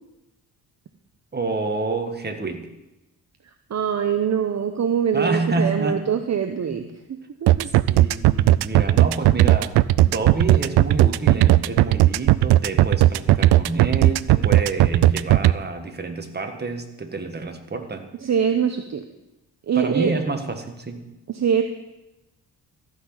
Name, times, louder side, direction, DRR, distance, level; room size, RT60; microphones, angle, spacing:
voice 1, 1.3-2.7 5.1-6.1 6.7-6.8 7.9-9.7 10.0-18.1 19.7-21.0, right 3 dB, 25° right, 5 dB, 1.7 m, -28 dB
voice 2, 3.7-6.9 7.4-7.7 18.2-19.0 19.7-20.1 21.3-21.6, right 7 dB, 45° right, 7 dB, 0.9 m, -23 dB
sound 1, 7.5-15.5, right 15 dB, 80° right, 0.5 m, -15 dB
14.5 x 6.1 x 8.7 m, 0.95 s
cardioid pair, 90°, 39 cm